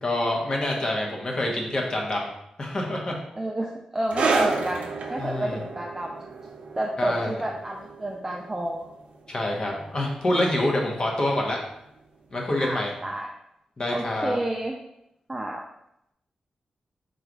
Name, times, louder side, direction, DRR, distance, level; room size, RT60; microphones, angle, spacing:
voice 1, 0.0-2.3 2.6-3.2 5.2-5.6 7.0-7.3 9.3-11.6 12.3-12.9 13.8-14.4, left 1 dB, 35° left, 0 dB, 0.8 m, -26 dB
voice 2, 3.4-6.1 6.8-8.9 12.6-13.3 13.9-14.8 15.3-15.6, right 1 dB, 15° right, 0 dB, 0.4 m, -30 dB
sound 1, 4.1-11.1 11.4-11.6 12.3-12.4, right 3 dB, 75° right, 0.6 m, -31 dB
3.8 x 2.3 x 4.6 m, 0.81 s
wide cardioid pair, 145°, 2 cm